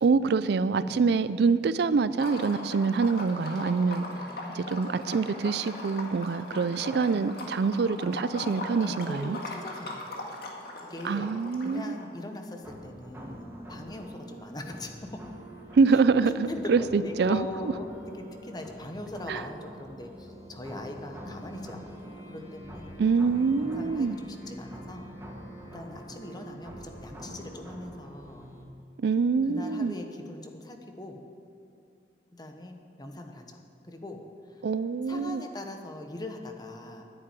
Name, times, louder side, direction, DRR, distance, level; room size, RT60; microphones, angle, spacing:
voice 1, 0.0-4.0 4.5-9.4 11.0-12.0 15.7-17.5 19.3-19.4 23.0-24.2 29.0-29.9 34.6-35.4, right 4 dB, 65° right, 15 dB, 0.4 m, -25 dB
Liquid, 2.1-12.0, left 2 dB, 60° left, 2.0 m, -39 dB
voice 2, 4.1-4.7 8.8-10.1 10.8-11.3 11.6-15.2 16.2-23.0 23.6-25.1 25.7-28.5 29.4-31.2 32.3-33.6 33.8-34.2 34.5-34.6 35.1-37.0, left 1 dB, 25° left, 4 dB, 1.1 m, -41 dB
sound 1, 12.6-28.6, right 1 dB, 15° right, 1.8 m, -45 dB
10.5 x 9.7 x 9.0 m, 2.5 s
head